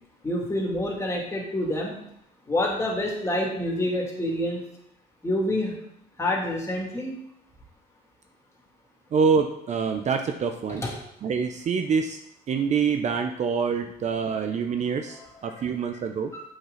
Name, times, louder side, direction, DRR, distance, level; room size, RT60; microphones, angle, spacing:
voice 1, 0.2-2.0 2.5-4.6 5.2-5.8 6.2-7.1 10.7-10.9 15.1-15.4 16.3-16.4, left 1 dB, 15° left, -2 dB, 2.6 m, -27 dB
voice 2, 9.1-10.8 11.2-12.2 12.5-16.3, right 5 dB, 45° right, 6 dB, 0.7 m, -26 dB
7.8 x 6.1 x 4.0 m, 0.74 s
cardioid pair, 110°, 17 cm